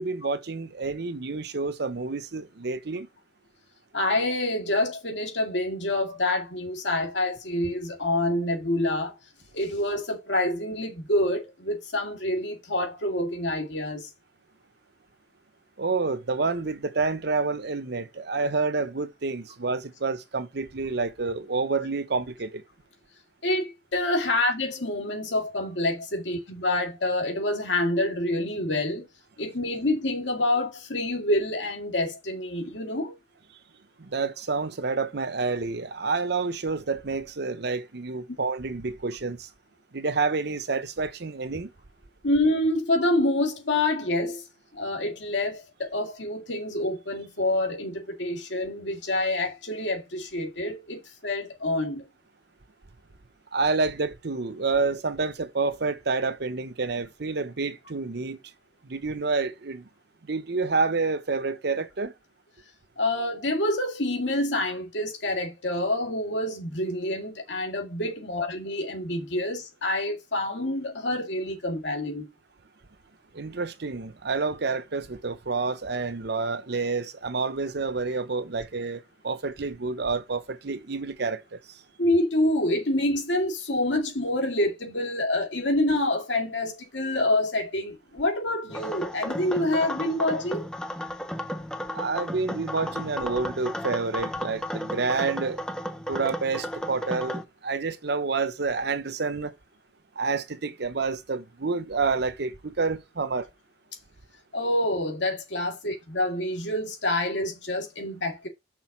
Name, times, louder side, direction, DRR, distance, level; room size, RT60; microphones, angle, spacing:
voice 1, 0.0-3.1 15.8-22.6 34.0-39.5 39.9-41.7 53.5-58.4 58.8-59.9 60.2-62.1 73.3-81.6 91.9-95.6 96.1-99.5 100.2-103.5, right 4 dB, 65° right, 0.8 m, -28 dB
voice 2, 3.9-9.2 9.5-14.1 23.4-29.1 29.4-33.1 42.2-44.4 44.7-52.0 63.0-72.3 82.0-90.6 104.5-108.5, left 1 dB, 80° left, 2.3 m, -27 dB
sound 1, 88.7-97.4, equal, 5° left, 0.7 m, -34 dB
6.1 x 4.0 x 5.9 m
head